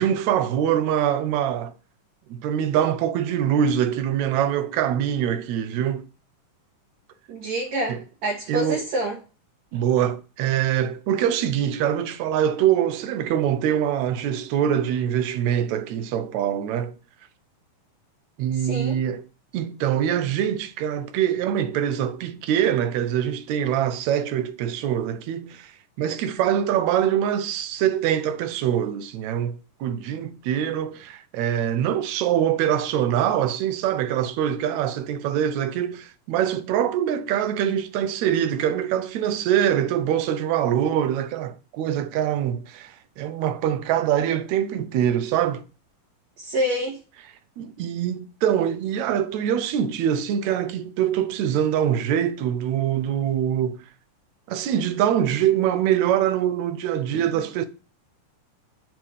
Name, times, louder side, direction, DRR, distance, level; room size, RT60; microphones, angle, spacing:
voice 1, 0.0-1.7 2.3-6.1 7.9-8.0 8.5-8.9 9.7-16.9 18.4-19.2 19.5-25.7 26.0-45.6 47.6-53.8 54.5-57.7, right 10 dB, 75° right, 1.8 m, -24 dB
voice 2, 7.3-9.2 18.6-19.0 46.4-47.0, right 1 dB, 60° right, 2.8 m, -27 dB
7.4 x 3.6 x 6.4 m
omnidirectional pair, 3.7 m